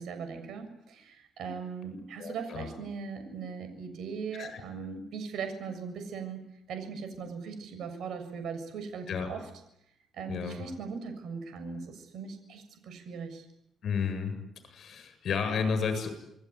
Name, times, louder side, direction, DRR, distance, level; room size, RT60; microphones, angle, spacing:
voice 1, 0.0-6.4 6.7-9.5 10.1-13.5, right 5 dB, 70° right, 8 dB, 7.0 m, -39 dB
voice 2, 2.2-2.7 4.4-4.6 9.1-9.3 10.3-10.6 13.8-14.3 14.6-16.1, left 6 dB, 55° left, 9 dB, 8.0 m, -32 dB
28.0 x 20.5 x 9.9 m, 0.78 s
cardioid pair, 140°, 0 cm